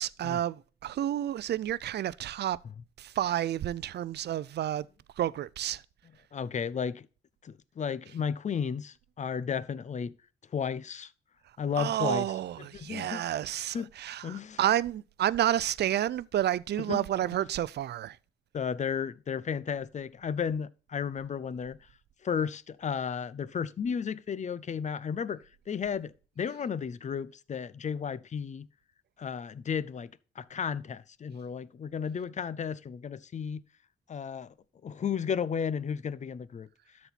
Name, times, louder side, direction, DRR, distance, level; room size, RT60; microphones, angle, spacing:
voice 1, 0.0-2.6 3.0-4.9 5.2-5.8 11.8-18.2, right 12 dB, 55° right, 0.5 m, -30 dB
voice 2, 6.3-7.1 7.4-10.1 10.5-11.1 11.6-12.3 12.6-13.2 13.7-13.9 14.2-14.6 16.9-17.0 18.5-21.8 22.2-28.7 29.2-30.1 30.4-33.6 34.1-34.5 34.8-36.7, left 7 dB, 35° left, 0.6 m, -33 dB
12.5 x 4.3 x 4.2 m
cardioid pair, 90°, 20 cm